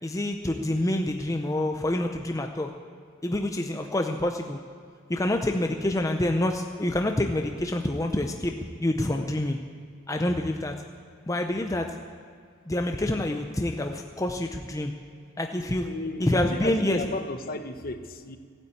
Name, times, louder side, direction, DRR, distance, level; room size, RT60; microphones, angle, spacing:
voice 1, 0.0-2.7 3.2-4.6 5.1-8.5 8.8-9.6 10.1-10.7 11.3-11.9 12.7-14.9 15.4-15.9 16.2-17.0, left 1 dB, 15° left, 4 dB, 0.6 m, -27 dB
voice 2, 15.8-18.4, left 2 dB, 45° left, 8 dB, 0.9 m, -34 dB
15.5 x 8.9 x 8.6 m, 2.1 s
head